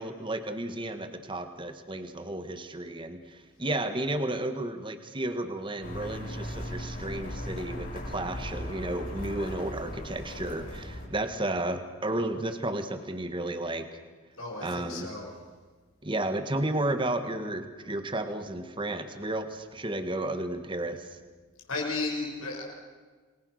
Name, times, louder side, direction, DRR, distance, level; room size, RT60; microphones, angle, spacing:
voice 1, 0.0-14.0 14.6-15.1 16.0-21.1, right 1 dB, 25° right, 8 dB, 1.6 m, -33 dB
sound 1, 5.8-11.1, left 1 dB, 40° left, 7.1 m, -38 dB
voice 2, 14.4-15.3 21.7-22.6, left 3 dB, 75° left, -1 dB, 7.0 m, -33 dB
29.0 x 21.0 x 6.5 m, 1.4 s
head